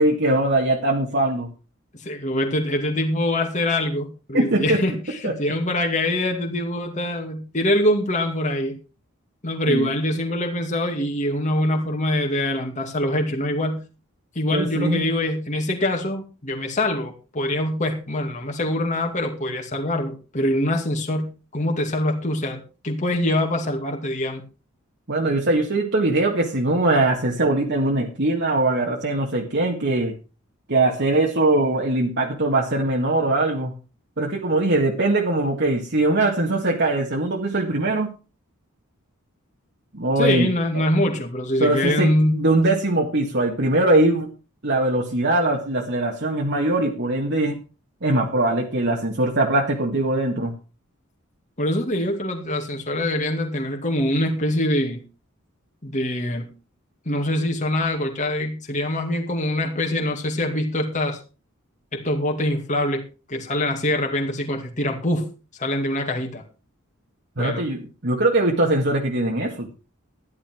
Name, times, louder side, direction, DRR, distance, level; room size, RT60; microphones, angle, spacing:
voice 1, 0.0-1.5 4.3-4.8 5.2-5.3 9.7-9.9 14.5-15.0 25.1-30.1 30.7-33.7 34.2-38.1 39.9-40.5 40.7-40.8 41.6-44.3 44.6-47.6 48.0-50.5 67.4-69.7, right 2 dB, 55° right, 1 dB, 2.0 m, -21 dB
voice 2, 2.0-8.8 9.4-13.8 14.4-24.4 40.2-42.4 51.6-55.0 55.8-56.5 57.1-61.2 61.9-63.0 63.3-65.3 65.6-66.4 67.4-67.7, left 1 dB, 35° left, 2 dB, 2.3 m, -24 dB
13.5 x 11.5 x 4.5 m, 0.33 s
head